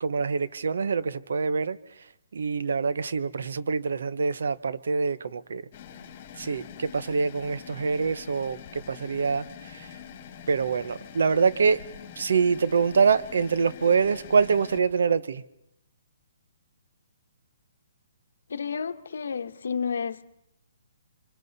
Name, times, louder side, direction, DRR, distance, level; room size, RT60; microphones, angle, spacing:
voice 1, 0.0-1.8 2.3-5.6 6.4-9.9 10.5-11.8 12.2-15.4, right 5 dB, 70° right, 16 dB, 0.8 m, -25 dB
sound 1, 5.7-14.8, left 8 dB, 30° left, 3.9 m, -45 dB
voice 2, 18.5-20.3, left 6 dB, 75° left, 11 dB, 1.1 m, -31 dB
29.0 x 25.0 x 4.1 m, 0.78 s
hypercardioid pair, 175°, 0 cm